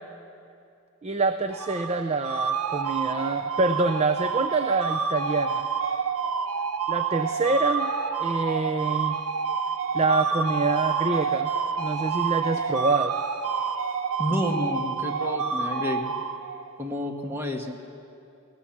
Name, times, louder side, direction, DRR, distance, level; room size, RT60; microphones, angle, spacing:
voice 1, 1.0-5.7 6.9-7.9 8.2-9.2 9.9-11.5 11.8-13.1, right 3 dB, 30° right, 8 dB, 0.6 m, -26 dB
sound 1, 1.5-16.8, right 5 dB, 80° right, 0.9 m, -28 dB
voice 2, 14.2-16.1 16.8-17.8, left 1 dB, 10° right, 2 dB, 1.6 m, -30 dB
21.0 x 17.5 x 7.3 m, 2.6 s
head